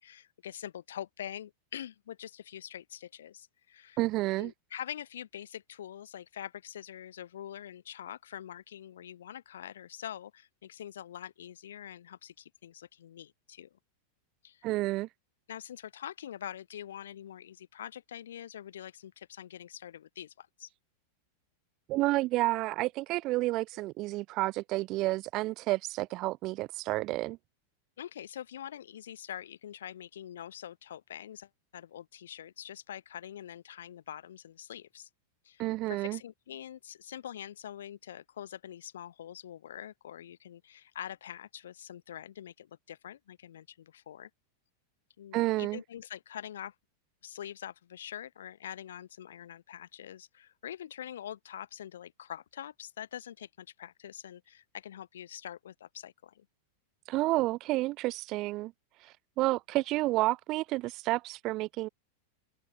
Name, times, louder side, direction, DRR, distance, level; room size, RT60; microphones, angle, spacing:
voice 1, 0.0-4.0 4.4-13.7 14.4-14.7 15.5-20.7 28.0-35.1 35.4-44.3 45.2-46.7 47.2-56.5, left 10 dB, 60° left, 2.1 m, -44 dB
voice 2, 4.0-4.5 14.6-15.1 21.9-27.4 35.6-36.2 45.3-45.8 57.1-58.7 59.0-61.9, right 19 dB, 40° right, 1.9 m, -30 dB
figure-of-eight pair, 90°, 0 cm